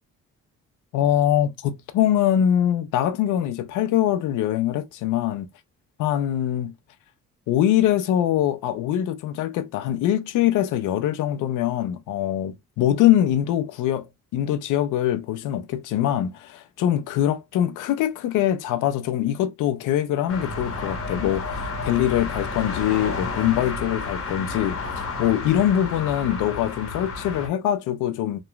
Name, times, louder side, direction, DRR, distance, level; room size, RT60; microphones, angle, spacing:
voice 1, 0.9-5.5 6.0-6.7 7.5-14.0 14.3-28.4, left 11 dB, 85° left, 0.5 m, -23 dB
sound 1, 20.3-27.5, left 3 dB, 45° left, 0.9 m, -31 dB
2.9 x 2.3 x 2.3 m
cardioid pair, 90°, 30 cm